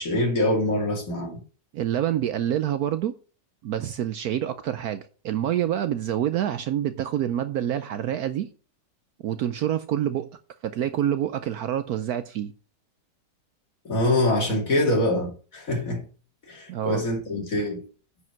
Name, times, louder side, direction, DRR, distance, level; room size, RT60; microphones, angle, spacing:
voice 1, 0.0-1.4 13.8-16.0 16.5-17.8, left 1 dB, 50° left, 3.1 m, -24 dB
voice 2, 1.7-3.2 3.6-8.5 9.2-10.3 10.6-12.5 16.7-17.0, right 11 dB, 70° right, 1.0 m, -27 dB
9.5 x 5.2 x 5.9 m
omnidirectional pair, 1.9 m